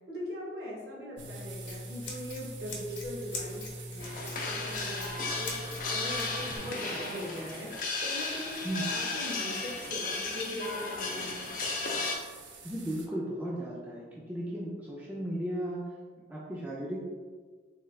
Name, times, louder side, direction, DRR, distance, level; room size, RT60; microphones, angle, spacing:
voice 1, 0.1-11.4, equal, 60° right, -4 dB, 1.0 m, -40 dB
Scissors, 1.2-6.6, left 1 dB, 80° left, 0.8 m, -41 dB
sound 1, 1.2-13.1, right 5 dB, 85° right, 0.5 m, -49 dB
sound 2, 4.0-12.2, left 3 dB, 50° left, 0.5 m, -35 dB
voice 2, 12.6-15.9 16.3-17.0, right 1 dB, 10° right, -6 dB, 0.4 m, -35 dB
3.5 x 2.4 x 3.2 m, 1.5 s
head